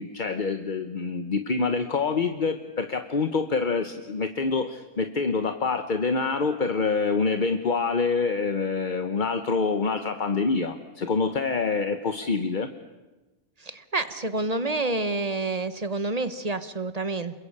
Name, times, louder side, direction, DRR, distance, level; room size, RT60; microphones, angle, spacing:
voice 1, 0.0-12.7, left 4 dB, 35° left, 8 dB, 1.0 m, -26 dB
voice 2, 13.6-17.4, right 2 dB, 30° right, 12 dB, 1.1 m, -28 dB
28.0 x 21.5 x 8.7 m, 1.2 s
omnidirectional pair, 1.6 m